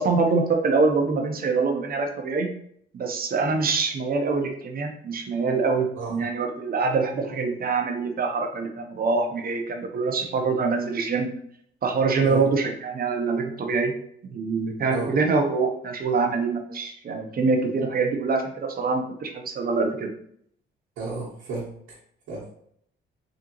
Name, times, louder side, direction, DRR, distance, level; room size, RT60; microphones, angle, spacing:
voice 1, 0.0-2.5 2.9-11.3 11.8-13.9 14.3-20.1, right 4 dB, 50° right, 4 dB, 0.8 m, -25 dB
voice 2, 21.0-22.0 22.3-22.4, right 3 dB, 85° right, -8 dB, 1.3 m, -33 dB
3.8 x 3.5 x 3.0 m, 0.67 s
cardioid pair, 90°, 20 cm